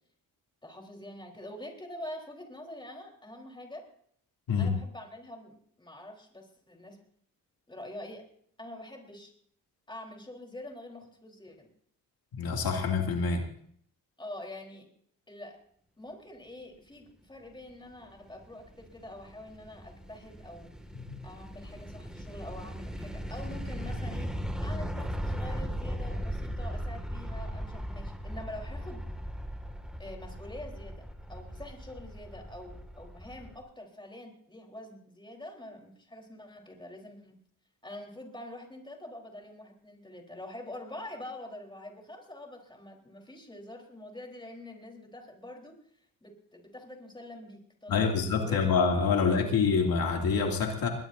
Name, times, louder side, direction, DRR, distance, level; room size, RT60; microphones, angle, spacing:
voice 1, 0.6-3.9 4.6-7.0 7.7-8.2 8.6-9.3 9.9-11.7 14.2-14.9 15.3-15.6 16.0-20.7 21.2-29.1 30.0-37.4 37.8-45.7 46.2-48.7, left 1 dB, 15° left, 2 dB, 3.9 m, -45 dB
voice 2, 12.3-13.5 21.0-21.1 47.9-50.9, left 5 dB, 85° left, 2 dB, 2.5 m, -26 dB
sound 1, 18.1-33.6, equal, ahead, 2.0 m, -38 dB
21.0 x 20.0 x 2.7 m, 0.62 s
cardioid pair, 105°, 35 cm